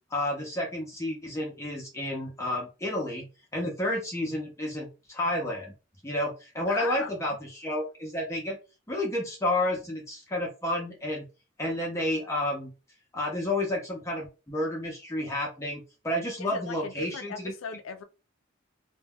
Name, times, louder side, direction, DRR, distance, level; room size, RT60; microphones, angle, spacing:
voice 1, 0.1-3.3 3.5-5.7 6.0-8.6 8.9-11.3 11.6-12.7 13.1-17.5, left 1 dB, 15° left, 0.5 m, -31 dB
voice 2, 6.7-7.4 16.4-18.0, left 5 dB, 90° left, 0.4 m, -38 dB
2.2 x 2.1 x 3.4 m
head